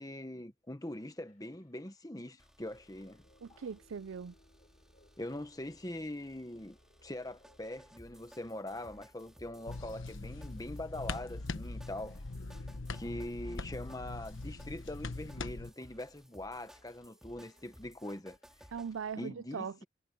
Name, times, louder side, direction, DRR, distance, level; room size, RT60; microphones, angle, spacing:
voice 1, 0.0-3.2 3.5-3.6 5.2-12.6 12.9-18.4 19.2-19.8, left 1 dB, 20° left, 1.0 m, -43 dB
sound 1, 0.8-18.9, left 1 dB, 40° left, 4.8 m, -69 dB
sound 2, 2.4-19.1, equal, 5° right, 2.4 m, -60 dB
voice 2, 3.4-4.3 18.7-19.8, right 6 dB, 90° right, 0.5 m, -40 dB
sound 3, 9.7-15.7, left 3 dB, 80° left, 1.1 m, -42 dB
head